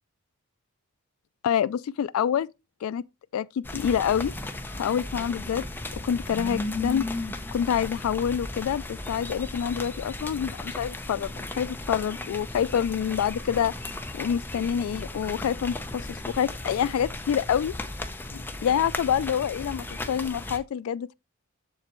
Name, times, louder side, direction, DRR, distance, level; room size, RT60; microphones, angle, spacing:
voice 1, 1.4-2.5 2.8-3.0 3.3-4.3 4.8-5.7 6.0-7.1 7.5-13.7 14.1-17.7 18.3-21.1, left 8 dB, 85° left, 0.3 m, -27 dB
sound 1, 3.6-20.6, left 2 dB, 10° left, 0.7 m, -36 dB
7.7 x 7.3 x 3.0 m
head